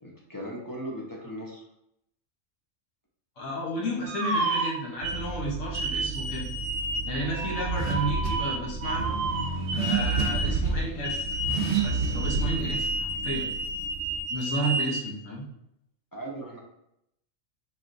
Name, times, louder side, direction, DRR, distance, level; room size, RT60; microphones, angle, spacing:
voice 1, 0.0-1.6 16.1-16.6, right 1 dB, 25° left, -3 dB, 0.4 m, -38 dB
voice 2, 3.4-6.5 7.0-9.1 9.7-11.4 11.8-13.5 14.3-15.5, equal, 75° left, -3 dB, 1.3 m, -32 dB
sound 1, 4.1-5.2 5.7-10.6 11.0-15.0, right 2 dB, 90° right, 1.0 m, -31 dB
Car / Accelerating revving vroom, 5.0-14.2, right 4 dB, 55° right, 0.7 m, -31 dB
4.2 x 3.1 x 2.6 m, 0.78 s
omnidirectional pair, 1.4 m